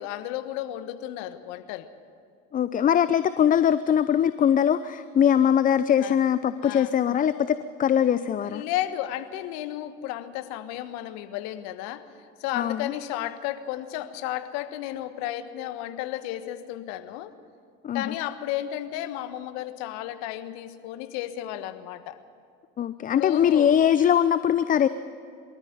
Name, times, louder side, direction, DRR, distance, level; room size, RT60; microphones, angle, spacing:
voice 1, 0.0-1.9 6.0-6.2 6.6-6.9 8.4-12.1 12.4-17.3 17.9-22.2 23.1-23.7, left 13 dB, 60° left, 11 dB, 1.4 m, -33 dB
voice 2, 2.5-8.6 12.5-12.9 17.8-18.1 22.8-24.9, left 9 dB, 25° left, 14 dB, 0.6 m, -22 dB
24.0 x 13.5 x 9.5 m, 2.3 s
hypercardioid pair, 80°, 31 cm